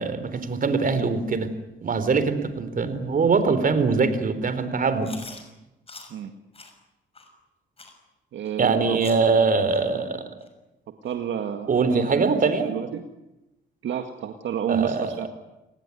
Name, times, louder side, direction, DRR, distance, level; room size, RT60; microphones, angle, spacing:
voice 1, 0.0-1.5 1.8-5.2 8.6-10.2 11.7-12.7 14.7-15.1, right 4 dB, 45° right, 12 dB, 4.0 m, -22 dB
Chewing mastication, 5.0-5.4 5.9-6.1 6.5-6.7 7.1-7.3 7.8-8.0 8.5-8.6 9.0-9.3 9.7-9.8 10.4-10.5 11.1-11.2 11.7-11.8, left 3 dB, 30° left, 6.3 m, -43 dB
voice 2, 8.3-9.1 11.0-13.0 13.8-15.3, right 8 dB, 70° right, 6 dB, 1.9 m, -30 dB
29.5 x 18.5 x 9.8 m, 0.97 s
cardioid pair, 90°, 20 cm